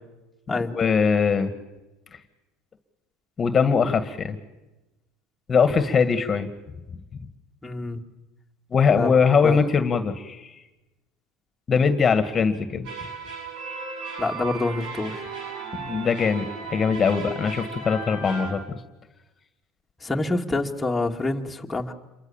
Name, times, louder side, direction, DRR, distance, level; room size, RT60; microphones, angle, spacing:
voice 1, 0.6-1.5 3.4-4.4 5.5-6.5 8.7-10.5 11.7-12.9 15.8-18.6, left 5 dB, 30° left, 10 dB, 2.0 m, -21 dB
voice 2, 7.6-8.0 9.0-9.1 9.4-9.6 14.2-15.2 20.0-21.9, left 2 dB, 10° left, 0 dB, 2.3 m, -26 dB
sound 1, 12.8-18.5, right 4 dB, 70° right, 7.5 m, -35 dB
28.0 x 23.0 x 7.3 m, 1.0 s
supercardioid pair, 95°, 0 cm